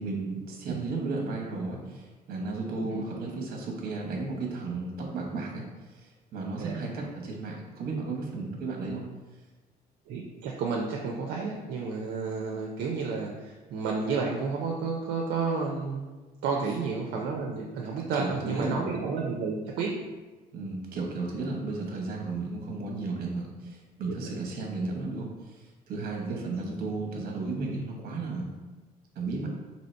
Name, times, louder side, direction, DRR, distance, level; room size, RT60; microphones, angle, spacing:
voice 1, 0.0-5.6 5.9-9.1 18.2-18.9 20.5-28.5 29.1-29.5, right 3 dB, 60° right, 0 dB, 0.9 m, -34 dB
voice 2, 6.6-7.0 10.1-20.0 24.1-24.4 26.3-26.5 27.1-27.2, right 4 dB, 75° right, -1 dB, 0.5 m, -31 dB
2.8 x 2.7 x 4.3 m, 1.2 s
cardioid pair, 110°, 17 cm